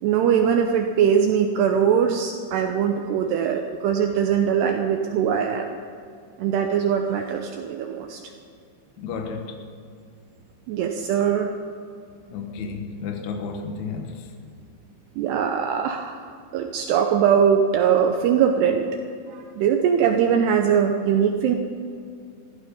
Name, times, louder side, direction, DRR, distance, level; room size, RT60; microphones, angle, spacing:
voice 1, 0.0-5.7 6.4-8.2 10.7-11.5 15.2-16.2 16.5-18.8 19.3-21.6, right 8 dB, 80° right, 2.6 m, -21 dB
voice 2, 9.0-9.6 12.3-14.3, left 5 dB, 70° left, 1.7 m, -32 dB
15.0 x 14.5 x 5.4 m
omnidirectional pair, 5.4 m